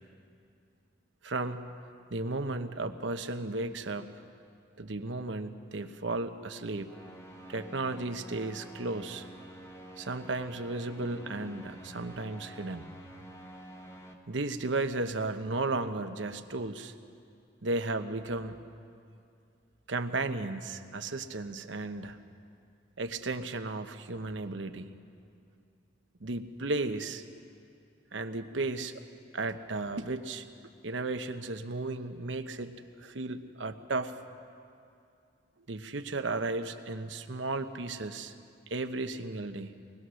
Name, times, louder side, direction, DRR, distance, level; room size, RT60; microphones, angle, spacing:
voice 1, 1.2-1.7 2.1-4.1 4.8-6.9 7.5-9.3 10.0-12.9 14.3-16.9 17.6-18.6 19.9-22.2 23.0-24.9 26.2-27.2 28.1-28.9 29.3-30.4 30.8-34.1 35.7-38.4 38.7-39.7, right 2 dB, 80° right, 8 dB, 1.0 m, -34 dB
sound 1, 6.8-14.1, right 1 dB, 15° left, 1.1 m, -49 dB
21.5 x 20.0 x 6.4 m, 2.4 s
head